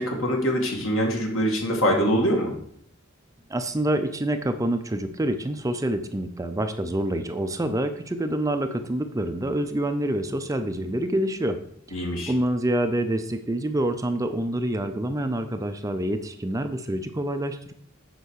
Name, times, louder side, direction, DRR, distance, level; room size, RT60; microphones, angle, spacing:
voice 1, 0.0-2.5 11.9-12.3, equal, 70° left, 1 dB, 2.1 m, -24 dB
voice 2, 3.5-11.6 11.9-12.0 12.3-17.7, right 1 dB, 15° right, 7 dB, 0.5 m, -27 dB
8.0 x 4.7 x 6.4 m, 0.66 s
head